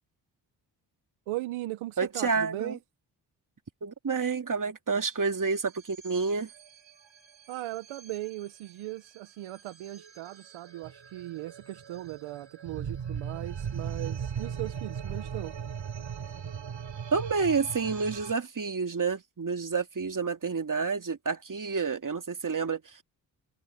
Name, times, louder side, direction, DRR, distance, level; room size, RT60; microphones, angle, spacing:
voice 1, 1.3-2.8 7.5-15.5, right 17 dB, 85° right, 1.2 m, -38 dB
voice 2, 2.0-2.8 3.8-6.5 17.1-23.0, right 5 dB, 40° right, 2.8 m, -29 dB
sound 1, 5.2-18.3, right 7 dB, 65° right, 6.4 m, -39 dB
hypercardioid pair, 40°, 48 cm